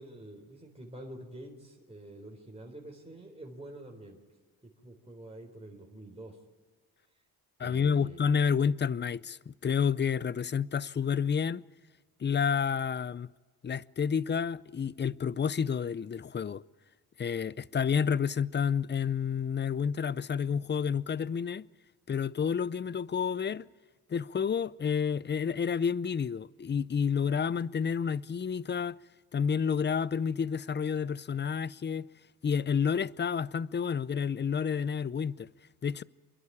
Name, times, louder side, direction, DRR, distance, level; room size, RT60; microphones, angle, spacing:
voice 1, 0.0-4.2 4.8-6.4 7.6-8.4, right 1 dB, 15° right, 3.8 m, -47 dB
voice 2, 7.6-11.6 12.2-13.3 13.6-16.6 17.2-21.6 22.1-23.7 24.1-28.9 29.3-32.1 32.4-35.5 35.8-36.0, left 6 dB, 25° left, 0.5 m, -30 dB
26.5 x 11.5 x 8.6 m
cardioid pair, 80°, 40 cm